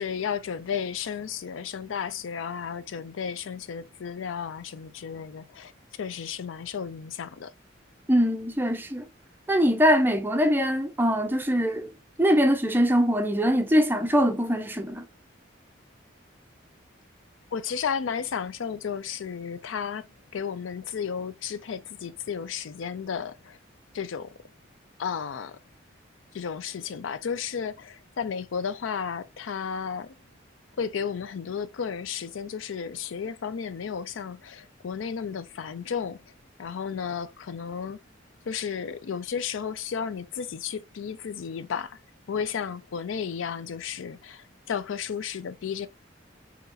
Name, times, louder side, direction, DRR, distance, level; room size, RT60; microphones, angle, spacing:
voice 1, 0.0-7.5 17.5-23.6 23.9-24.4 25.0-25.6 26.3-30.1 30.8-36.3 36.6-38.0 38.5-42.0 42.3-45.9, left 7 dB, 85° left, 0.4 m, -33 dB
voice 2, 8.1-9.1 9.5-11.9 12.2-15.1, equal, 10° right, 0.4 m, -22 dB
3.9 x 2.8 x 2.6 m
head